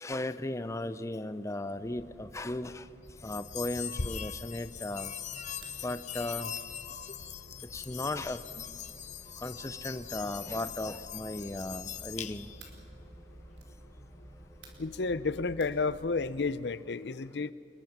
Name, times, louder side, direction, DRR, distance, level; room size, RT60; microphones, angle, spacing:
voice 1, 0.0-2.9 3.2-5.1 5.8-6.5 7.7-8.4 9.4-12.5, left 2 dB, 15° left, 12 dB, 0.7 m, -36 dB
sound 1, 1.8-16.5, equal, 10° right, 1.2 m, -53 dB
sound 2, 3.2-12.7, left 7 dB, 40° left, 0.9 m, -41 dB
sound 3, 5.6-5.8 6.5-6.7 7.5-7.8 8.6-8.8 9.6-10.0 10.5-10.9 11.6-11.9 12.6-12.9 13.5-13.8 14.6-14.9 15.6-15.8, right 5 dB, 90° right, 4.5 m, -57 dB
voice 2, 14.8-17.5, left 4 dB, 70° left, 16 dB, 0.6 m, -31 dB
28.0 x 22.0 x 6.0 m, 2.6 s
head